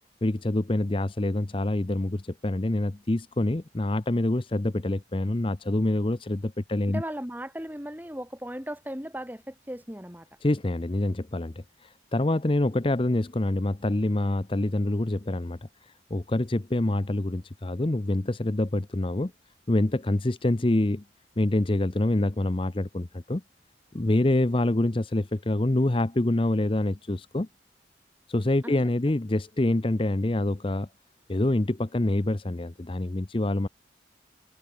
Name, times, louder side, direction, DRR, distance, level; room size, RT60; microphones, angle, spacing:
voice 1, 0.2-7.0 10.4-11.5 11.8-19.3 19.7-21.0 21.4-23.4 23.9-27.5 28.3-30.9 31.3-33.7, left 1 dB, 30° left, 0.7 m, -26 dB
voice 2, 6.9-10.3 28.6-28.8, equal, 10° right, 3.9 m, -37 dB
head